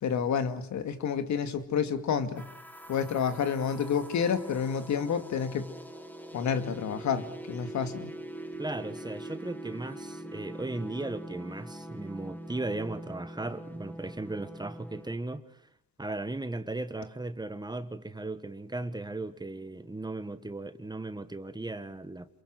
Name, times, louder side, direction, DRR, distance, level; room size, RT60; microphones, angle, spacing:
voice 1, 0.0-2.4 2.9-5.7 6.3-8.1, left 7 dB, 70° left, 2.4 m, -29 dB
sound 1, 2.3-15.2, right 1 dB, 5° left, 2.8 m, -43 dB
voice 2, 8.6-15.6 16.0-22.3, right 2 dB, 15° right, 1.6 m, -37 dB
28.0 x 22.5 x 7.9 m
cardioid pair, 90°, 30 cm